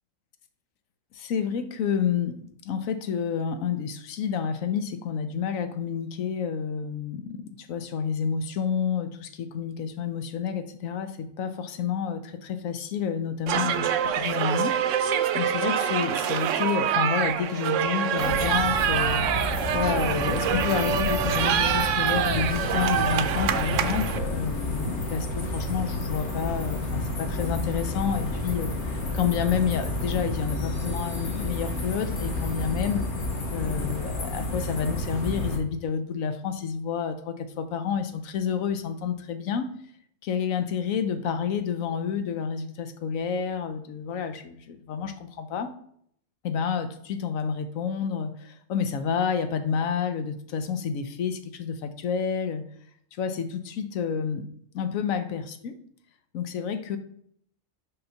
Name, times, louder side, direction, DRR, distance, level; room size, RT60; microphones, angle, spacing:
voice 1, 1.2-19.2 19.7-33.1 33.5-39.7 40.2-45.7 46.4-52.6 53.2-54.5 54.7-55.7 56.3-57.0, left 7 dB, 90° left, 9 dB, 1.1 m, -29 dB
sound 1, 13.5-24.2, right 9 dB, 70° right, 0.9 m, -25 dB
sound 2, 18.2-35.6, left 2 dB, 60° left, 1.6 m, -30 dB
5.5 x 3.9 x 5.6 m, 0.66 s
omnidirectional pair, 1.4 m